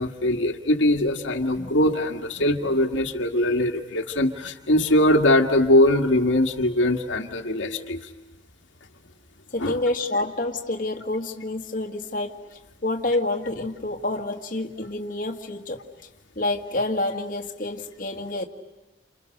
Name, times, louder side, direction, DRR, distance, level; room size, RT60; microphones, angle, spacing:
voice 1, 0.0-8.1 9.6-9.8, left 1 dB, 75° left, 4 dB, 1.9 m, -21 dB
voice 2, 9.5-15.8 16.4-18.5, left 2 dB, 45° left, 2 dB, 1.8 m, -28 dB
29.5 x 28.5 x 6.6 m, 1.1 s
head